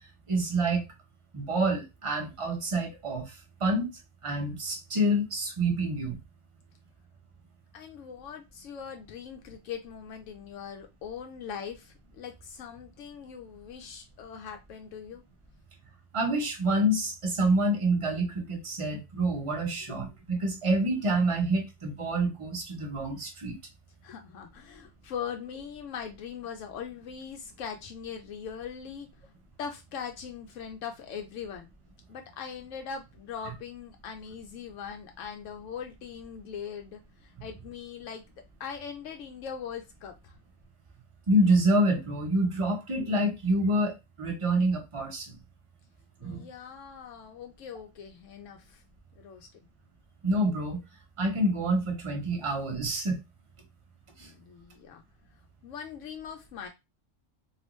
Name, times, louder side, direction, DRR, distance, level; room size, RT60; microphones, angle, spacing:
voice 1, 0.3-0.8 1.3-3.9 4.2-6.2 16.1-23.6 41.3-45.3 46.2-46.5 50.2-50.8 51.2-53.2 54.2-54.3, right 1 dB, 30° right, 1 dB, 0.8 m, -27 dB
voice 2, 7.7-15.2 19.9-20.0 24.0-29.3 29.6-31.7 32.1-38.2 38.6-40.4 43.0-43.1 46.2-48.8 49.2-49.5 54.2-55.0 55.6-56.7, left 7 dB, 80° left, 4 dB, 0.9 m, -41 dB
3.1 x 2.4 x 3.0 m, 0.23 s
omnidirectional pair, 1.3 m